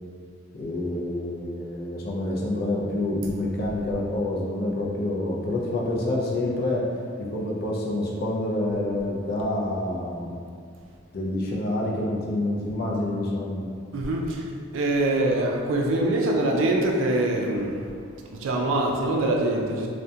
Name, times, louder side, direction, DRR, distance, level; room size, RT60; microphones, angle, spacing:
voice 1, 0.5-6.8 7.2-10.4 11.1-13.7, left 1 dB, 50° left, -3 dB, 0.4 m, -27 dB
voice 2, 13.9-14.4 14.7-17.9 18.3-19.9, right 2 dB, 70° right, 0 dB, 0.3 m, -24 dB
2.3 x 2.1 x 2.6 m, 2.2 s
head